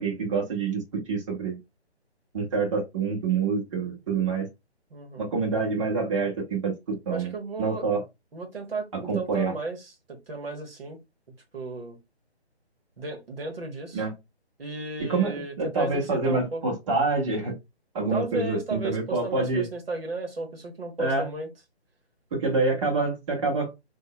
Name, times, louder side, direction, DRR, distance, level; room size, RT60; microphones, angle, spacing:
voice 1, 0.0-1.6 2.3-4.5 5.2-7.3 7.6-8.0 9.1-9.5 13.9-14.1 15.1-17.6 17.9-19.7 21.0-21.3 22.3-23.7, right 4 dB, 30° right, 1.4 m, -26 dB
voice 2, 4.9-5.2 7.1-7.9 8.3-11.0 11.5-12.0 13.0-14.0 14.6-16.6 16.9-17.0 18.1-21.5, right 3 dB, 60° right, 1.5 m, -34 dB
4.4 x 2.8 x 3.0 m
figure-of-eight pair, 145°, 33 cm